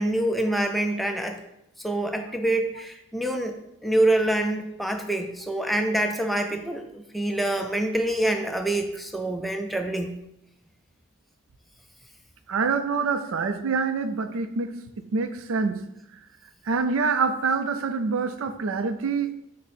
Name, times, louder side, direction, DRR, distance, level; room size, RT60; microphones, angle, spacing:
voice 1, 0.0-1.4 1.8-3.6 3.8-10.1, right 1 dB, ahead, 5 dB, 0.3 m, -26 dB
voice 2, 12.5-15.8 16.6-19.3, right 4 dB, 70° right, 9 dB, 0.4 m, -26 dB
6.1 x 2.1 x 4.2 m, 0.82 s
head